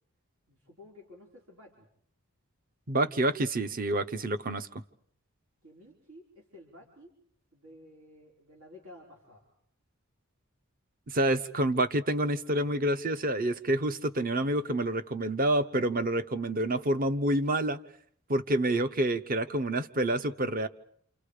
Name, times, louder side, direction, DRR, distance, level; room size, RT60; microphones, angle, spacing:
voice 1, 0.5-1.9 5.6-7.1 7.5-9.5, left 1 dB, 85° right, -1 dB, 5.1 m, -53 dB
voice 2, 2.9-4.7 11.1-17.8 18.3-20.7, right 1 dB, 45° right, 11 dB, 1.0 m, -28 dB
29.5 x 27.5 x 5.0 m, 0.62 s
head